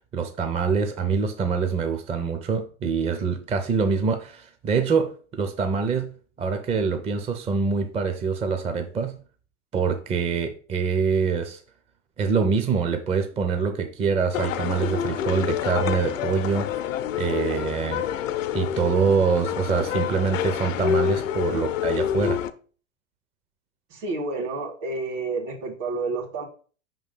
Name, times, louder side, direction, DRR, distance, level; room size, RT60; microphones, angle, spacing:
voice 1, 0.1-6.1 6.4-9.2 9.7-11.6 12.2-16.7 17.2-18.1 18.5-22.4, right 5 dB, 15° right, 0.5 m, -25 dB
sound 1, 14.3-22.5, left 10 dB, 75° left, 0.6 m, -27 dB
voice 2, 23.9-26.5, right 3 dB, 65° right, 2.2 m, -30 dB
5.2 x 3.7 x 5.4 m
hypercardioid pair, 100°, 39 cm